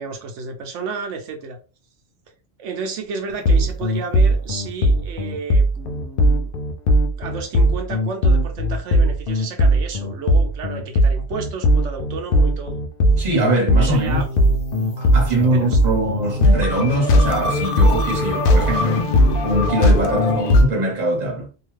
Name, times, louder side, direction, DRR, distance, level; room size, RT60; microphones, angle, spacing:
voice 1, 0.0-1.6 2.6-6.5 7.2-12.8 13.8-14.3 15.5-15.8, right 5 dB, 90° right, 1.0 m, -32 dB
sound 1, 3.5-20.6, equal, 60° left, 0.6 m, -18 dB
voice 2, 13.2-14.2 15.0-19.0 19.4-21.5, right 1 dB, 35° right, 1.2 m, -22 dB
2.7 x 2.4 x 3.1 m
omnidirectional pair, 1.2 m